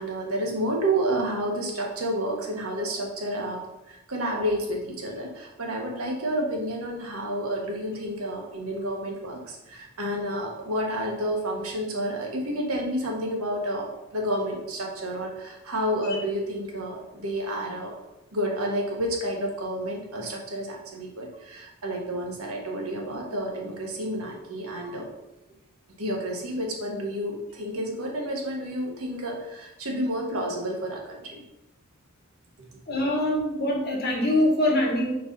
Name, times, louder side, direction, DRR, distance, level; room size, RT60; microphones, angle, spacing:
voice 1, 0.0-13.9 14.1-17.9 18.3-25.1 26.0-31.4 32.6-32.7, right 1 dB, 90° right, 0 dB, 1.3 m, -30 dB
voice 2, 32.9-35.1, left 1 dB, 50° left, -2 dB, 1.7 m, -23 dB
4.6 x 4.0 x 5.3 m, 0.94 s
head